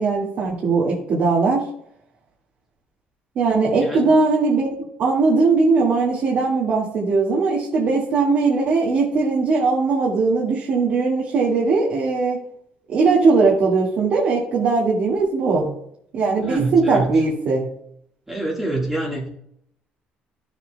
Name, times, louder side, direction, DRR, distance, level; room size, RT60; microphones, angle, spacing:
voice 1, 0.0-1.7 3.4-4.7 5.0-12.4 12.9-15.8 16.1-17.7, right 4 dB, 55° right, -3 dB, 2.0 m, -19 dB
voice 2, 3.8-4.1 16.4-17.2 18.3-19.3, right 2 dB, 10° right, -3 dB, 1.7 m, -26 dB
14.5 x 7.4 x 2.3 m, 0.69 s
cardioid pair, 165°, 3 cm